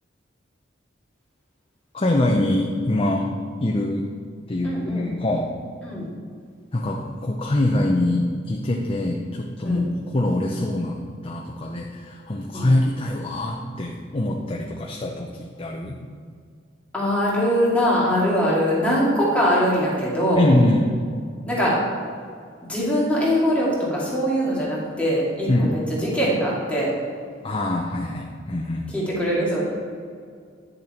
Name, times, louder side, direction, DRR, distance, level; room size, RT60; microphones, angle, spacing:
voice 1, 1.9-3.3 3.6-4.1 4.5-5.5 6.7-9.9 10.1-16.0 20.3-20.9 25.5-25.8 27.4-28.9, left 1 dB, 30° left, 0 dB, 0.6 m, -24 dB
voice 2, 4.6-5.1 5.8-6.1 9.6-9.9 12.5-12.7 16.9-20.5 21.5-21.8 22.7-26.9 28.9-29.6, equal, 5° left, -7 dB, 2.4 m, -22 dB
10.5 x 6.7 x 4.4 m, 2.1 s
head